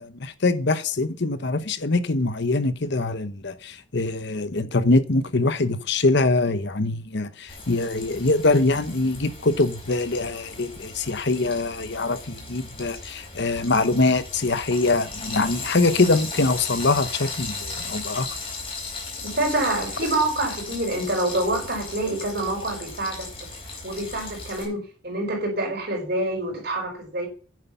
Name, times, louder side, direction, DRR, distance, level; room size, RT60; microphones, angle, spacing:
voice 1, 0.0-18.3, left 3 dB, 60° left, 1.0 m, -23 dB
Frying (food), 7.5-24.6, left 3 dB, 25° left, 5.1 m, -36 dB
voice 2, 19.2-23.5 23.8-27.3, right 2 dB, 50° right, 5.1 m, -27 dB
9.6 x 8.1 x 5.7 m
head